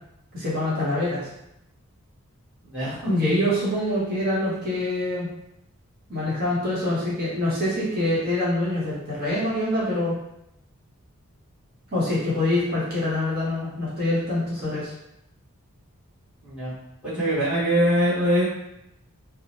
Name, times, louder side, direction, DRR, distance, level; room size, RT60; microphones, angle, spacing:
voice 1, 0.3-1.3 3.1-5.3 6.1-10.1 11.9-14.9, left 1 dB, 45° right, -9 dB, 0.9 m, -25 dB
voice 2, 16.4-16.8 17.0-18.4, equal, 5° right, -12 dB, 1.0 m, -22 dB
2.7 x 2.0 x 2.9 m, 0.82 s
head